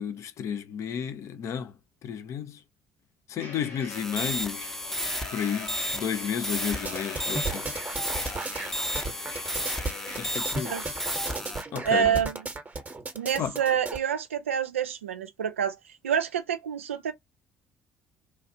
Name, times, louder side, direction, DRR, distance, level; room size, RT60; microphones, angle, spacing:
voice 1, 0.0-1.7 2.0-2.6 3.3-4.7 5.3-7.7 10.2-10.7 11.7-12.1 13.4-13.6, left 8 dB, 45° left, 0.5 m, -32 dB
sound 1, 3.4-10.4, left 3 dB, 75° left, 2.0 m, -42 dB
sound 2, 3.9-11.6, equal, 5° left, 0.7 m, -33 dB
sound 3, 6.8-14.0, right 3 dB, 25° right, 0.9 m, -35 dB
voice 2, 11.8-12.4 13.1-15.8 16.0-17.1, right 8 dB, 80° right, 0.4 m, -27 dB
3.1 x 2.4 x 2.7 m
figure-of-eight pair, 50°, 7 cm